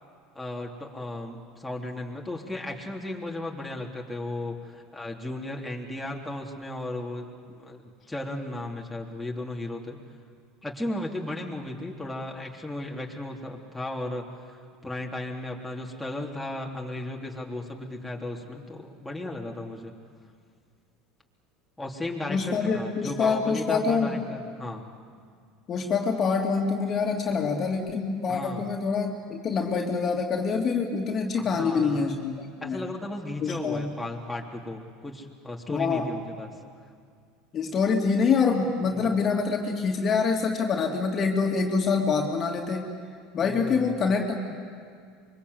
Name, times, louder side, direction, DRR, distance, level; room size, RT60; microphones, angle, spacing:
voice 1, 0.3-7.3 7.6-7.8 8.1-10.0 10.6-19.9 21.8-24.9 28.3-28.7 31.3-32.1 32.6-36.5 38.8-39.1 43.4-44.0, left 1 dB, 5° left, -1 dB, 3.3 m, -35 dB
voice 2, 22.3-24.2 25.7-32.8 33.4-34.0 35.7-36.1 37.5-42.9 43.3-44.5, left 5 dB, 40° left, 2 dB, 2.8 m, -26 dB
25.0 x 23.5 x 8.1 m, 2.1 s
hypercardioid pair, 80°, 0 cm